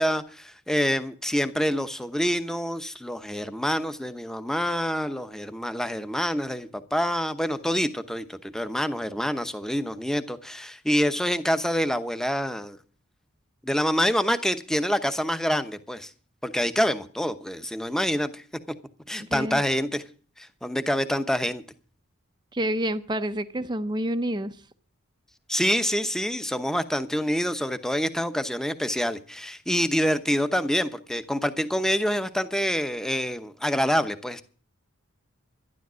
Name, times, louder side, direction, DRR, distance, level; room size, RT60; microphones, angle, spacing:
voice 1, 0.0-12.8 13.6-16.1 16.4-18.4 19.1-20.0 20.4-21.6 25.5-34.4, equal, ahead, 0.9 m, -26 dB
voice 2, 19.2-19.6 22.5-24.6, right 1 dB, 20° right, 0.6 m, -28 dB
12.0 x 11.5 x 6.2 m
head